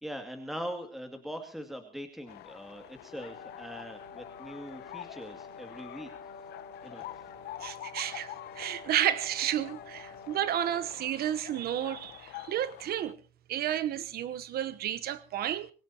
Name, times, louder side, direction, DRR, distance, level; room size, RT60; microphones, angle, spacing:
voice 1, 0.0-6.1 6.8-7.1, equal, ahead, 2.4 m, -41 dB
sound 1, 2.3-13.1, left 15 dB, 75° left, 0.9 m, -47 dB
Wind instrument woodwind instrument, 3.0-10.9, left 4 dB, 60° left, 4.1 m, -49 dB
voice 2, 7.6-13.2 13.5-15.7, right 11 dB, 65° right, 1.0 m, -32 dB
25.5 x 16.5 x 2.9 m
cardioid pair, 110°, 17 cm